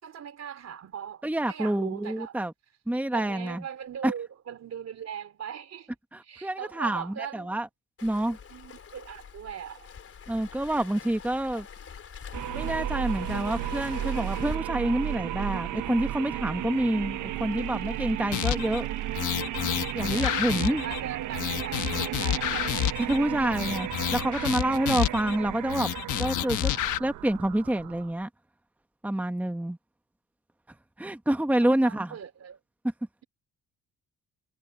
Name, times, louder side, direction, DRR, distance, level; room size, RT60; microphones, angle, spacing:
voice 1, 0.0-2.4 3.1-5.9 6.2-7.6 8.5-9.9 20.8-22.7 23.1-23.3 31.6-32.6, right 8 dB, 60° right, 3.5 m, -40 dB
voice 2, 1.2-2.5 2.9-3.6 4.0-4.1 6.1-7.7 8.0-8.4 10.3-11.7 12.5-18.9 19.9-20.8 23.1-25.9 26.2-26.7 27.0-28.3 29.0-29.8 31.0-32.2, right 1 dB, 5° right, 1.3 m, -27 dB
Waves surf, 8.0-14.6, left 7 dB, 50° left, 3.9 m, -43 dB
sound 1, 12.3-28.2, right 13 dB, 80° right, 1.0 m, -34 dB
sound 2, 18.3-18.8 19.1-21.0 21.3-23.2 23.5-25.4 25.7-27.0, left 13 dB, 85° left, 1.2 m, -29 dB
cardioid pair, 90°, 30 cm